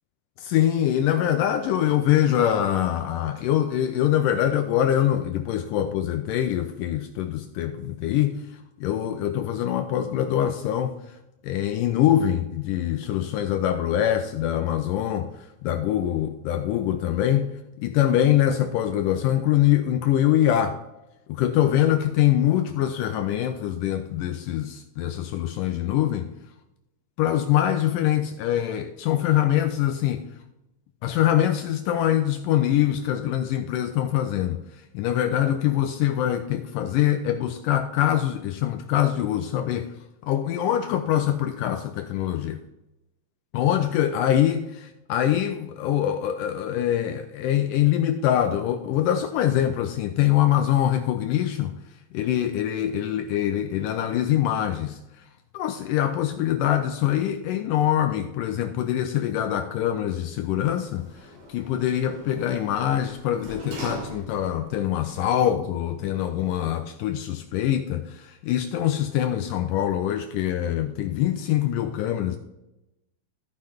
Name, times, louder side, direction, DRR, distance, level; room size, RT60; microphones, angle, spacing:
voice 1, 0.4-8.4 8.8-11.2 11.4-17.5 17.8-20.8 21.3-26.3 27.2-30.3 31.0-34.6 34.9-39.9 40.2-42.6 43.5-51.7 52.1-55.0 55.5-72.4, left 11 dB, 80° left, 7 dB, 2.0 m, -24 dB
Sliding door, 60.6-64.7 65.1-65.2, right 1 dB, 75° right, 4.6 m, -41 dB
14.5 x 5.4 x 3.5 m, 0.94 s
omnidirectional pair, 4.1 m